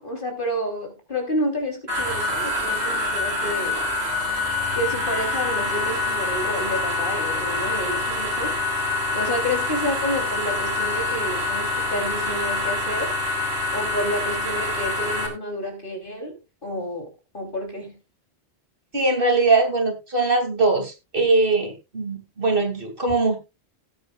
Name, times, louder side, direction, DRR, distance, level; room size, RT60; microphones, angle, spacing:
voice 1, 0.0-3.8 4.7-8.8 9.1-13.1 13.7-17.9, equal, 50° left, 3.6 m, -30 dB
sound 1, 1.9-15.3, left 2 dB, 70° right, 3.5 m, -26 dB
voice 2, 18.9-23.4, right 3 dB, 55° right, 2.8 m, -21 dB
18.5 x 8.8 x 2.4 m
omnidirectional pair, 1.1 m